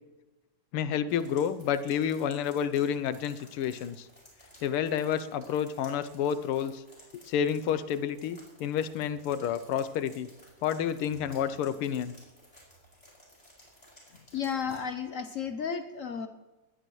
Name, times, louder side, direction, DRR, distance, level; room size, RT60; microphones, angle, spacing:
voice 1, 0.7-4.1 4.6-6.8 7.3-10.3 10.6-12.1, left 8 dB, 90° left, 13 dB, 1.7 m, -29 dB
sound 1, 1.1-14.8, equal, 15° left, 6.2 m, -56 dB
voice 2, 14.3-16.3, left 7 dB, 70° left, 8 dB, 0.7 m, -33 dB
20.0 x 18.5 x 3.1 m, 1.1 s
omnidirectional pair, 2.4 m